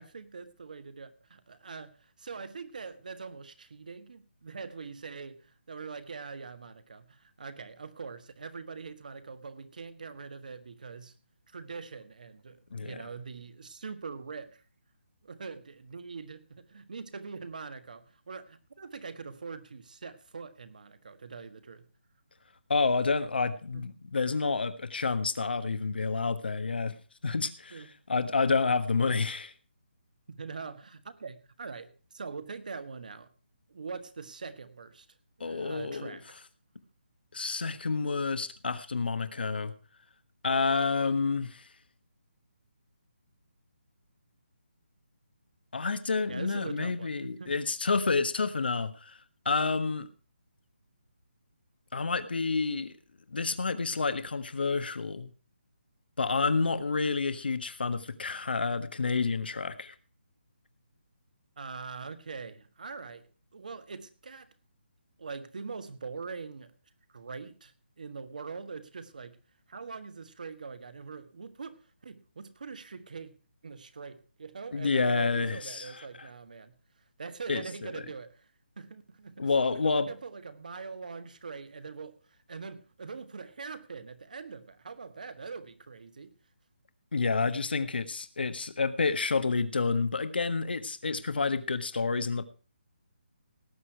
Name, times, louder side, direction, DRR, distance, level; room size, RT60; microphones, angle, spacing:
voice 1, 0.0-11.1 11.5-14.6 15.2-21.9 23.7-24.0 27.7-27.9 30.3-33.3 33.7-35.1 35.4-36.3 46.3-47.6 61.6-64.5 65.2-66.7 67.1-69.4 69.7-73.4 73.6-76.7 77.2-78.5 78.8-86.3, right 5 dB, 45° right, 12 dB, 1.5 m, -43 dB
voice 2, 22.7-27.0 27.2-27.8 28.1-29.5 35.4-36.2 37.3-39.7 40.4-41.7 45.7-49.2 49.4-50.1 51.9-52.9 53.3-55.3 56.2-59.9 74.7-76.3 77.5-77.9 79.4-80.1 87.1-92.5, left 4 dB, 60° left, 11 dB, 1.5 m, -29 dB
18.0 x 8.6 x 4.6 m, 0.36 s
hypercardioid pair, 180°, 6 cm